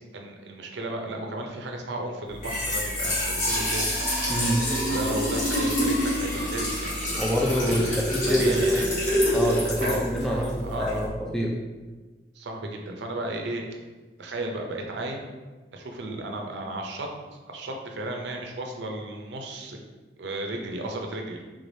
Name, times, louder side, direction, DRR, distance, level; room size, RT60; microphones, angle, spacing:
voice 1, 0.1-3.8 4.8-7.0 7.7-8.9 9.8-11.1 12.3-13.6 14.2-15.2 15.7-17.1 17.4-19.8 20.2-21.4, right 1 dB, 75° right, 2 dB, 0.5 m, -34 dB
Trickle dribble / Fill (with liquid), 2.3-11.1, equal, 40° left, 1.5 m, -26 dB
voice 2, 4.3-4.6 7.2-8.9 9.3-11.1 11.3-11.5, equal, 5° left, -2 dB, 0.3 m, -26 dB
3.5 x 3.3 x 2.6 m, 1.3 s
head